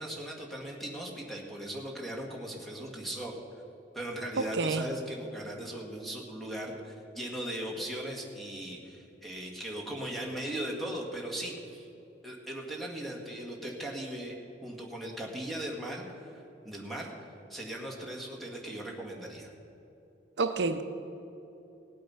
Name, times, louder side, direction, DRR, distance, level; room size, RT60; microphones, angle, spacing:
voice 1, 0.0-3.4 3.9-11.9 12.2-14.4 14.6-19.5, right 1 dB, ahead, 1.9 m, -38 dB
voice 2, 4.4-4.9 20.4-20.8, right 3 dB, 70° right, 0.6 m, -28 dB
18.0 x 8.5 x 5.7 m
head